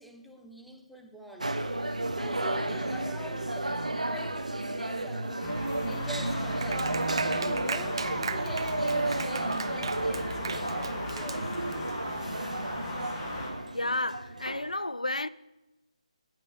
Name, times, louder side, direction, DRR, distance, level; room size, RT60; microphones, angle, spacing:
voice 1, 0.0-1.6 2.0-5.6 5.9-6.9 7.3-11.5, right 1 dB, ahead, 0.8 m, -45 dB
sound 1, 1.4-14.7, right 2 dB, 75° right, 1.0 m, -32 dB
sound 2, 5.4-13.5, left 1 dB, 25° left, 1.9 m, -38 dB
Clapping, 6.6-11.9, right 5 dB, 45° right, 0.5 m, -37 dB
voice 2, 13.7-15.3, left 2 dB, 85° left, 0.4 m, -31 dB
9.4 x 8.3 x 7.0 m
figure-of-eight pair, 150°, 4 cm